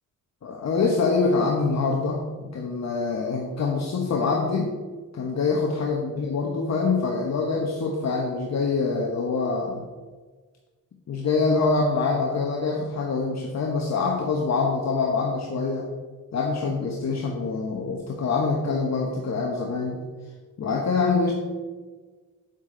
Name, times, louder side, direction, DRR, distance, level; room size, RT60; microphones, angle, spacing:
voice 1, 0.4-4.7 5.1-9.9 11.1-15.9 16.3-20.0 20.6-21.3, left 4 dB, 55° left, -1 dB, 1.2 m, -25 dB
8.5 x 8.0 x 3.9 m, 1.4 s
cardioid pair, 110°, 32 cm